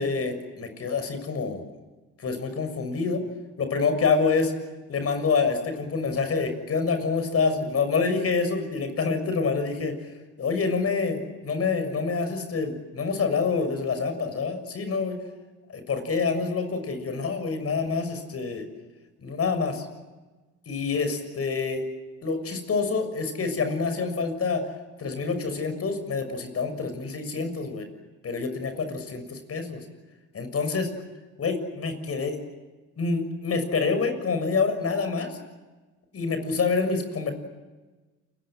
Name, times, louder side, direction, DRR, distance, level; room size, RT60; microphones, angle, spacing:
voice 1, 0.0-1.6 2.2-3.2 3.6-4.5 4.9-9.9 10.4-15.2 15.7-18.7 19.2-19.9 20.7-21.8 22.2-24.6 25.0-27.9 28.2-29.8 30.3-30.9 31.4-32.4 33.0-35.4 36.1-37.3, left 4 dB, 50° left, 8 dB, 6.7 m, -27 dB
29.0 x 23.5 x 7.8 m, 1.2 s
cardioid pair, 90°, 30 cm